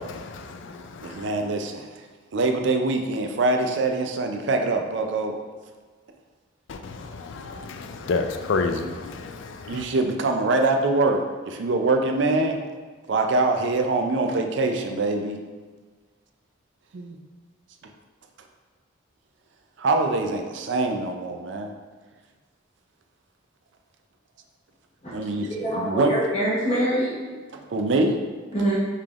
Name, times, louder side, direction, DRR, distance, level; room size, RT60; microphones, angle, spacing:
voice 1, 0.0-1.3 6.7-9.8, left 4 dB, 65° left, 0.4 m, -30 dB
voice 2, 1.0-1.9 2.3-5.4 8.8-8.9 9.6-12.6 13.1-15.4 16.9-17.2 19.8-21.7 25.1-26.1 27.5-28.2, right 2 dB, 60° right, 0.4 m, -24 dB
voice 3, 25.5-27.2 28.5-28.8, right 1 dB, 30° left, 0.9 m, -24 dB
5.6 x 3.4 x 2.4 m
head